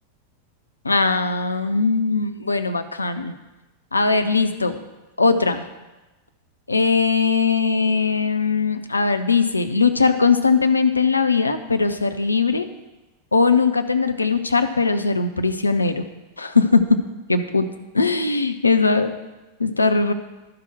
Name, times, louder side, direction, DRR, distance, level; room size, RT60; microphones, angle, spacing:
voice 1, 0.8-3.3 3.9-4.8 5.2-5.7 6.7-12.7 13.3-16.1 16.4-16.8 17.3-17.7 17.9-19.1 19.6-20.1, left 4 dB, 80° left, 8 dB, 0.6 m, -20 dB
12.0 x 5.9 x 4.9 m, 1.1 s
figure-of-eight pair, 90°, 0 cm